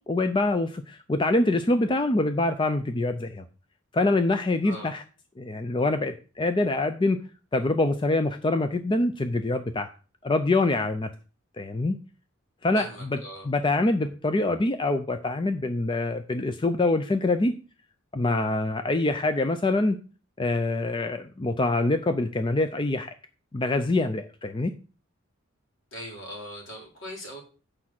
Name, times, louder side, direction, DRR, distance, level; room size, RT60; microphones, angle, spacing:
voice 1, 0.1-3.4 3.9-5.0 5.4-7.2 7.5-9.9 10.2-11.1 11.6-12.0 12.6-17.5 18.1-20.0 20.4-23.1 23.5-24.7, left 2 dB, 25° left, 9 dB, 0.5 m, -25 dB
voice 2, 12.7-13.5 25.9-27.4, equal, 65° left, -1 dB, 3.6 m, -40 dB
8.6 x 4.9 x 6.0 m, 0.37 s
head